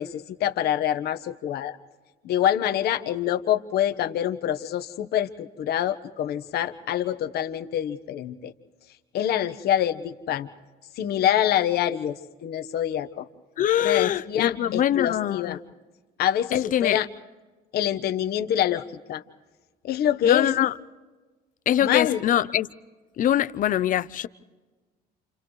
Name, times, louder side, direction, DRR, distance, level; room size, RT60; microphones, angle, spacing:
voice 1, 0.0-1.8 2.2-8.5 9.1-10.5 11.0-13.3 13.8-15.6 16.2-17.1 17.7-19.2 19.8-20.5 21.8-22.2, left 11 dB, 70° left, 1.3 m, -25 dB
voice 2, 13.6-15.6 16.5-17.0 20.2-20.7 21.7-22.7 23.2-24.3, left 11 dB, 55° left, 0.7 m, -23 dB
29.0 x 29.0 x 3.2 m
cardioid pair, 110°, 17 cm